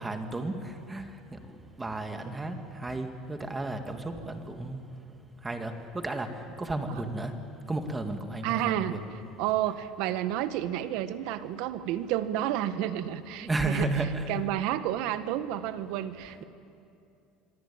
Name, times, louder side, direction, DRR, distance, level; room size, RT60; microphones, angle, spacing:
voice 1, 0.0-1.4 1.8-4.8 5.4-6.3 6.6-7.3 7.7-9.0 13.4-14.3, right 2 dB, 15° right, 5 dB, 2.2 m, -33 dB
voice 2, 8.4-8.9 9.4-13.9 14.3-16.4, right 12 dB, 70° right, 11 dB, 1.4 m, -30 dB
24.5 x 23.5 x 8.9 m, 2.6 s
supercardioid pair, 125°, 0 cm